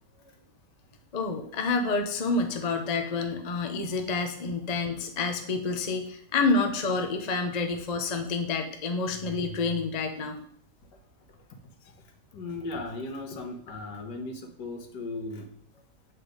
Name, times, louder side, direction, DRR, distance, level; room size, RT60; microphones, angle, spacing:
voice 1, 1.1-10.4, left 3 dB, 40° left, 5 dB, 0.6 m, -28 dB
voice 2, 12.3-15.4, left 2 dB, 75° left, 4 dB, 1.7 m, -37 dB
8.1 x 4.4 x 5.0 m, 0.67 s
omnidirectional pair, 1.9 m